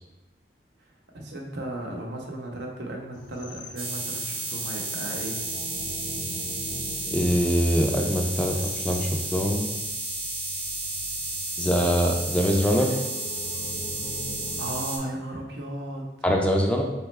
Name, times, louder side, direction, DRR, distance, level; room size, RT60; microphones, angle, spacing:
voice 1, 1.1-5.4 14.6-16.0, right 1 dB, 75° right, 0 dB, 0.8 m, -35 dB
sound 1, 3.1-14.8, left 1 dB, 80° left, 0.9 m, -42 dB
sound 2, 3.8-15.0, right 2 dB, 30° right, 0.8 m, -32 dB
voice 2, 7.1-9.7 11.6-12.9 16.2-16.8, equal, 5° left, 0 dB, 0.4 m, -23 dB
4.2 x 3.5 x 3.2 m, 1.0 s
head